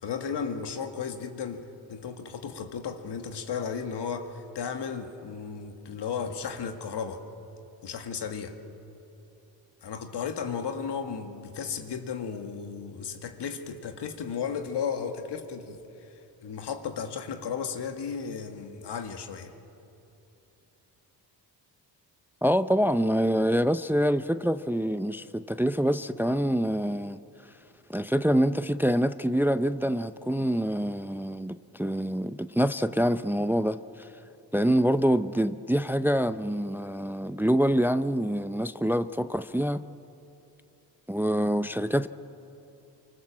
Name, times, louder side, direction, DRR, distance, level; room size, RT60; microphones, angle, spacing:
voice 1, 0.0-7.2 7.8-8.6 9.8-19.5, left 6 dB, 70° left, 6 dB, 2.0 m, -34 dB
voice 2, 22.4-27.2 27.9-34.1 34.5-39.8 41.1-42.1, equal, 5° right, 12 dB, 0.5 m, -26 dB
24.5 x 24.5 x 7.5 m, 2.9 s
cardioid pair, 70°, 42 cm